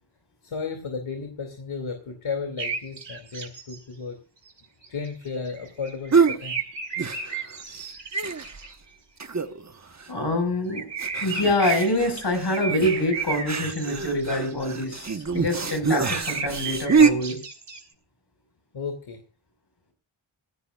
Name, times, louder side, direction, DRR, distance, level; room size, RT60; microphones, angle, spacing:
voice 1, 0.4-4.2 4.9-6.6 18.7-19.2, left 5 dB, 70° left, 5 dB, 2.7 m, -34 dB
sound 1, 2.6-3.8 4.5-4.6 4.8-8.7 10.7-14.8 15.2-15.7 16.0-17.8, right 5 dB, 60° right, 4.3 m, -34 dB
sound 2, 6.1-6.4 7.0-7.5 7.8-7.9 8.1-8.7 9.2-9.7 10.0-10.1 11.0-17.1, right 5 dB, 35° right, 1.2 m, -25 dB
voice 2, 10.1-10.9 11.2-17.4, left 1 dB, 55° left, 6 dB, 5.3 m, -25 dB
19.0 x 16.5 x 2.4 m, 0.38 s
wide cardioid pair, 135°, 50 cm